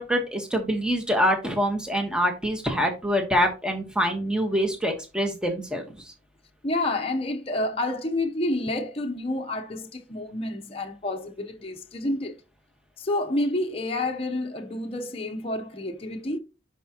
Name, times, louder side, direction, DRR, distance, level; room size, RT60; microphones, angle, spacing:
voice 1, 0.0-5.8, equal, 5° right, 1.3 m, -25 dB
voice 2, 6.6-12.4 13.0-16.4, left 1 dB, 30° left, 0.7 m, -29 dB
10.5 x 4.8 x 2.9 m
head